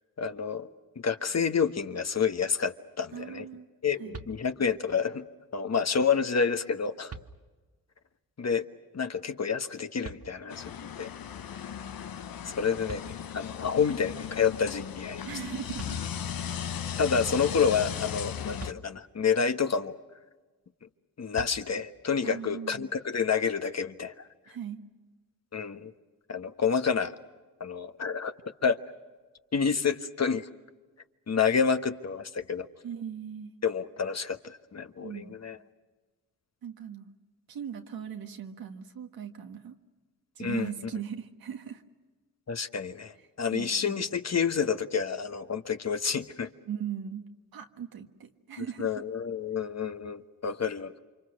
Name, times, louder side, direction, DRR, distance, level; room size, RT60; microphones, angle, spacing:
voice 1, 0.2-0.7 0.9-3.5 3.8-5.3 5.5-7.1 8.4-8.6 8.9-11.1 12.4-15.3 17.0-20.0 21.2-24.3 25.5-25.9 26.3-27.1 27.6-28.3 28.6-28.8 29.5-30.5 31.3-32.7 33.6-35.6 40.4-40.7 42.5-46.5 48.8-51.0, left 6 dB, 50° left, 8 dB, 1.3 m, -29 dB
voice 2, 3.1-4.2 15.2-16.0 17.1-17.2 22.2-22.9 24.5-24.8 32.8-33.5 35.0-35.4 36.6-37.1 37.5-39.8 40.3-41.8 43.1-44.1 46.6-49.0, right 8 dB, 85° right, 5 dB, 1.7 m, -39 dB
sound 1, 4.1-4.9 6.4-6.5 7.1-7.8 10.0-10.8 12.5-12.6 12.9-13.7 15.4-15.5 15.8-16.5 18.6-19.4 21.3-22.1, right 4 dB, 45° right, 1.3 m, -46 dB
sound 2, 10.5-18.7, left 8 dB, 75° left, 1.0 m, -37 dB
29.0 x 25.5 x 6.5 m, 1.3 s
cardioid pair, 60°, 35 cm